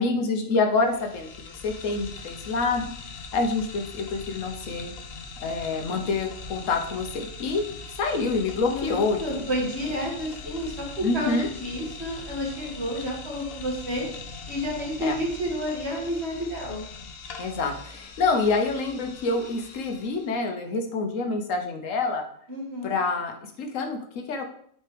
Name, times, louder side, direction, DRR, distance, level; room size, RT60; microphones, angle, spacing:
voice 1, 0.0-2.9 3.3-4.9 5.4-7.6 8.0-9.4 11.0-11.5 15.0-15.2 17.4-22.2 22.8-24.4, left 3 dB, 85° left, 4 dB, 1.3 m, -27 dB
sound 1, 0.7-20.4, left 4 dB, 55° left, 0.9 m, -41 dB
voice 2, 8.6-14.1 14.5-16.9 22.5-22.9, equal, 55° right, -3 dB, 2.3 m, -30 dB
8.8 x 4.3 x 3.3 m, 0.62 s
omnidirectional pair, 1.3 m